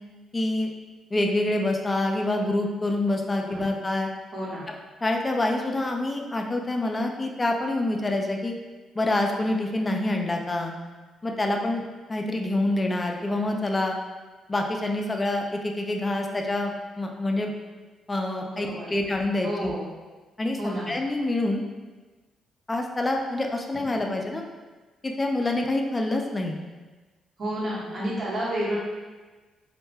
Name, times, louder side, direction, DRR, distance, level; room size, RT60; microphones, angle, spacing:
voice 1, 0.3-0.7 1.1-4.1 4.7-4.8 5.0-8.5 9.0-10.7 11.2-11.8 12.1-14.0 14.5-17.5 18.1-19.7 20.4-21.6 22.7-24.4 25.0-26.6, left 2 dB, 20° left, 2 dB, 0.3 m, -26 dB
voice 2, 3.3-3.6 4.3-4.6 18.4-18.9 19.4-19.9 20.6-20.9 27.4-28.8, equal, 45° right, -7 dB, 1.0 m, -30 dB
2.2 x 2.1 x 3.2 m, 1.3 s
cardioid pair, 90°, 0 cm